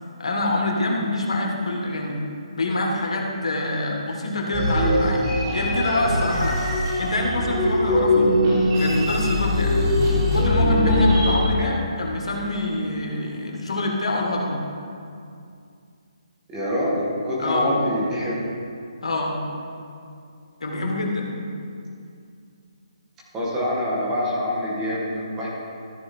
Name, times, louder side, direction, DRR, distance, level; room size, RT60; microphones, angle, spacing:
voice 1, 0.2-2.2 2.6-5.2 5.5-6.6 7.0-8.3 8.8-9.8 10.3-14.6 17.4-17.8 19.0-19.4 20.6-21.3, left 2 dB, 75° left, -1 dB, 1.8 m, -25 dB
sound 1, 4.5-11.3, left 1 dB, 30° right, 2.1 m, -21 dB
voice 2, 16.5-18.4 23.3-25.5, left 1 dB, 15° right, -7 dB, 1.9 m, -25 dB
13.5 x 4.6 x 4.4 m, 2.4 s
hypercardioid pair, 160°, 3 cm